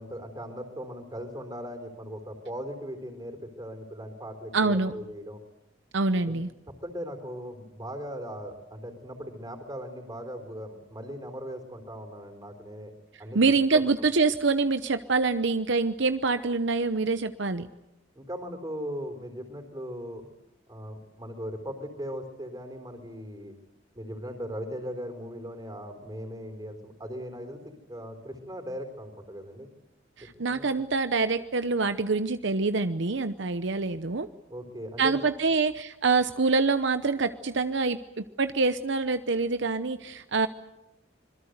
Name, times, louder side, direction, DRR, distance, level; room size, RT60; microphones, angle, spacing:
voice 1, 0.0-5.4 6.3-6.4 6.8-12.9 13.2-13.4 13.7-13.8 18.2-20.3 20.7-23.5 23.9-29.7 30.5-30.8 34.5-35.2, equal, 20° right, 7 dB, 4.0 m, -38 dB
voice 2, 4.5-4.9 5.9-6.5 13.3-17.7 30.2-34.3 35.0-40.5, right 4 dB, 65° right, 11 dB, 0.9 m, -25 dB
26.5 x 22.5 x 8.1 m, 0.91 s
head